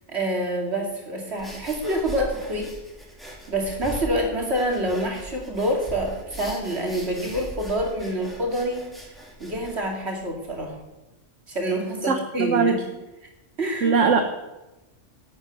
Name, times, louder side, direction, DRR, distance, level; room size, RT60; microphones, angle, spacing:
voice 1, 0.1-2.7 3.5-8.9 9.4-10.8 11.5-12.9 13.6-14.2, right 1 dB, 60° right, 1 dB, 2.9 m, -27 dB
sound 1, 1.4-10.6, right 1 dB, ahead, 3.0 m, -40 dB
voice 2, 12.1-12.8 13.8-14.2, right 5 dB, 80° right, 5 dB, 1.4 m, -20 dB
11.5 x 8.5 x 9.1 m, 1.0 s
omnidirectional pair, 1.2 m